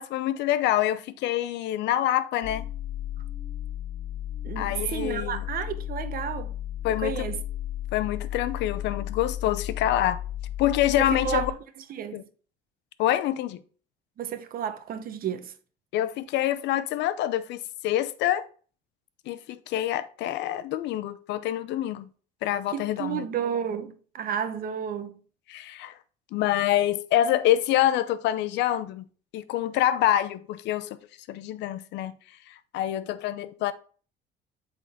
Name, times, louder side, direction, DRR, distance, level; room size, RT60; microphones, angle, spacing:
voice 1, 0.0-2.7 4.6-5.4 6.8-7.3 7.9-10.2 10.6-11.5 12.1-12.2 13.0-13.6 15.9-18.5 19.3-22.1 22.4-23.2 25.5-25.9 26.3-29.1 29.3-31.0 31.3-32.2 32.5-33.7, left 12 dB, 75° left, 0.6 m, -26 dB
sound 1, 2.4-11.5, left 12 dB, 40° left, 1.2 m, -34 dB
voice 2, 4.4-6.5 6.9-7.4 11.0-11.5 11.9-12.2 14.2-15.5 22.7-25.2, right 8 dB, 55° right, 0.9 m, -32 dB
8.5 x 3.8 x 3.5 m
cardioid pair, 115°, 18 cm